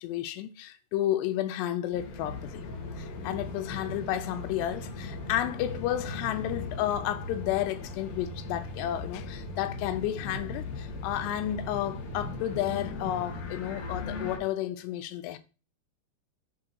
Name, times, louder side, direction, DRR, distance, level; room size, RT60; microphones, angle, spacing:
voice 1, 0.0-2.7 3.0-15.4, left 12 dB, 85° left, 2.8 m, -32 dB
sound 1, 1.9-14.4, left 3 dB, 65° left, 3.1 m, -38 dB
7.5 x 3.8 x 4.4 m
omnidirectional pair, 4.8 m